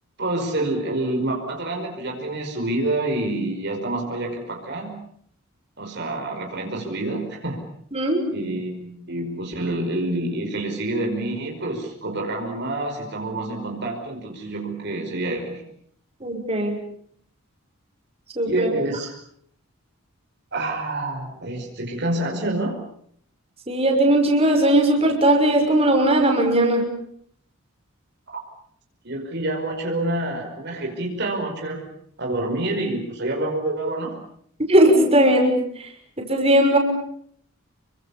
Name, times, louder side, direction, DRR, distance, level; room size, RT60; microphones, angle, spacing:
voice 1, 0.2-5.0 5.8-7.6 8.3-15.6 18.4-19.1 20.5-22.8 28.3-28.4 29.0-31.9 32.2-34.2, right 2 dB, 55° right, 1 dB, 5.2 m, -27 dB
voice 2, 7.9-8.2 16.2-16.8 18.4-18.7 23.7-26.9 34.7-35.6 36.2-36.8, right 1 dB, 30° right, 2 dB, 6.1 m, -18 dB
29.5 x 24.5 x 7.2 m, 0.66 s
head